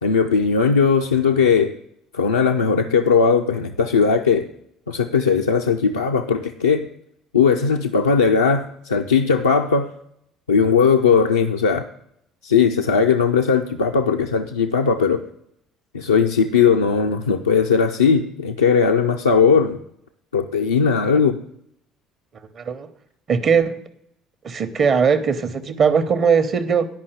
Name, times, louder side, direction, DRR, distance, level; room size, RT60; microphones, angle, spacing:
voice 1, 0.0-1.8 2.1-4.5 4.9-6.9 7.3-9.9 10.5-11.8 12.4-15.2 15.9-19.8 20.3-21.4, left 5 dB, 80° left, 1 dB, 0.4 m, -18 dB
voice 2, 22.6-22.9 23.3-23.8 24.4-26.9, right 6 dB, 40° right, 11 dB, 0.8 m, -19 dB
10.5 x 5.5 x 6.6 m, 0.74 s
figure-of-eight pair, 55°, 0 cm